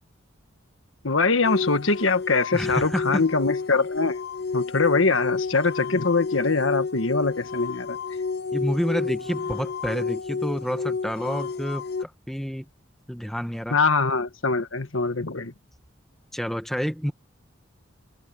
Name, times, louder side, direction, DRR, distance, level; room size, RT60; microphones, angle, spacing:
voice 1, 1.0-4.2 4.5-8.0 13.7-15.5, left 4 dB, 85° left, 1.5 m, -23 dB
sound 1, 1.4-12.0, left 4 dB, 50° left, 0.9 m, -30 dB
voice 2, 2.5-3.2 8.5-12.7 13.1-13.7 16.3-17.1, equal, ahead, 1.5 m, -29 dB
head